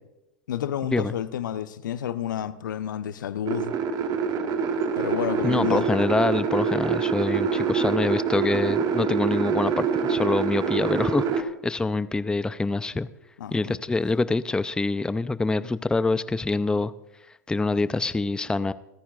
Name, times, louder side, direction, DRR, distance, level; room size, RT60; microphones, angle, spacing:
voice 1, 0.5-3.8 5.0-5.8 13.4-13.8, left 10 dB, 80° left, 0.7 m, -30 dB
sound 1, 3.5-11.4, right 6 dB, 40° right, 1.7 m, -25 dB
voice 2, 5.4-13.1 13.5-16.9 17.5-18.7, left 3 dB, 10° left, 0.5 m, -25 dB
28.5 x 10.0 x 2.4 m
hypercardioid pair, 95°, 10 cm